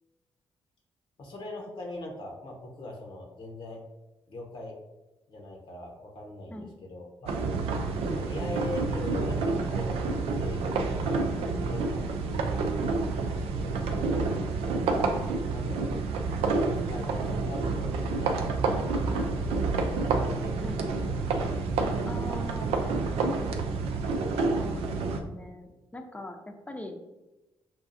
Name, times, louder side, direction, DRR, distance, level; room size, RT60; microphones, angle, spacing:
voice 1, 1.2-3.8 4.3-4.8 5.3-7.3 8.1-12.5 13.3-14.5 15.1-15.9 16.5-21.0, left 2 dB, 60° left, 1 dB, 0.9 m, -42 dB
sound 1, 7.3-25.2, right 3 dB, 80° right, 0.4 m, -29 dB
voice 2, 22.1-22.8 24.4-27.0, left 1 dB, 15° left, 4 dB, 0.6 m, -41 dB
5.6 x 2.4 x 2.6 m, 1.0 s
supercardioid pair, 50°, 10 cm